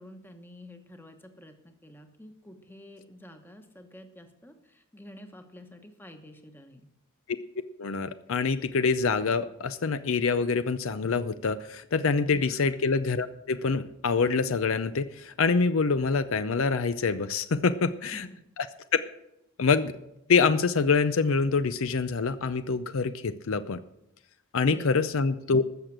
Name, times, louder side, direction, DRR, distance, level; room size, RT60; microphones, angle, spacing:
voice 1, 0.0-6.8 12.3-12.6 18.0-18.4 24.7-24.9, left 1 dB, 10° left, 6 dB, 1.1 m, -49 dB
voice 2, 7.8-18.3 19.6-19.9 20.3-23.8 24.5-25.6, left 4 dB, 65° left, 12 dB, 0.5 m, -25 dB
13.5 x 6.6 x 7.5 m, 0.85 s
head